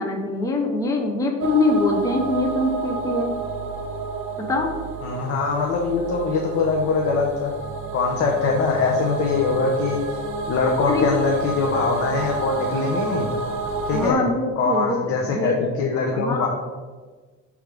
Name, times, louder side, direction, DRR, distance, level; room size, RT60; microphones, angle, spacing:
voice 1, 0.0-3.3 4.4-4.7 10.9-11.0 13.9-15.0 15.3-15.6 16.1-16.5, left 2 dB, 10° left, 1 dB, 0.6 m, -23 dB
sound 1, 1.4-14.1, right 3 dB, 45° right, 0.7 m, -30 dB
voice 2, 5.0-7.5 7.9-10.0 10.5-13.3 13.9-14.2 14.6-16.5, left 4 dB, 45° left, 0 dB, 0.8 m, -22 dB
6.4 x 3.5 x 4.8 m, 1.4 s
cardioid pair, 160°, 32 cm